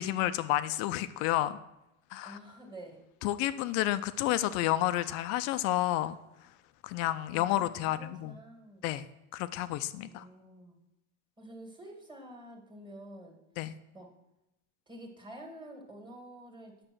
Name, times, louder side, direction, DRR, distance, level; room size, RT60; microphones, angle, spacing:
voice 1, 0.0-1.6 2.1-2.4 3.2-6.2 6.8-8.4 8.8-9.1 9.3-10.3 13.6-13.7, left 14 dB, 40° left, 13 dB, 0.4 m, -30 dB
voice 2, 2.2-3.0 7.3-8.9 10.0-10.8 11.4-13.4 13.9-14.1 14.9-16.8, right 1 dB, 10° right, 3 dB, 1.9 m, -49 dB
8.8 x 6.7 x 6.1 m, 0.90 s
supercardioid pair, 145°, 37 cm